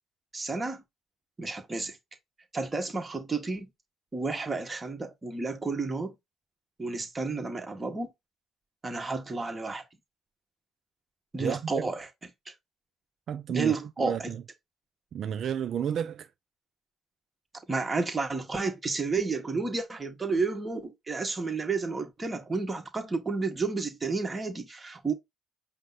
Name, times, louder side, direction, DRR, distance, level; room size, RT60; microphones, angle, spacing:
voice 1, 0.3-0.8 1.4-2.0 2.5-3.7 4.1-6.1 6.8-8.1 8.8-9.8 11.3-12.1 12.5-12.6 13.5-14.3 17.7-25.1, right 4 dB, 25° right, 1.6 m, -31 dB
voice 2, 11.4-11.9 13.3-14.4 15.1-16.3, right 8 dB, 55° right, 0.4 m, -32 dB
5.2 x 2.3 x 4.1 m
supercardioid pair, 80°, 0 cm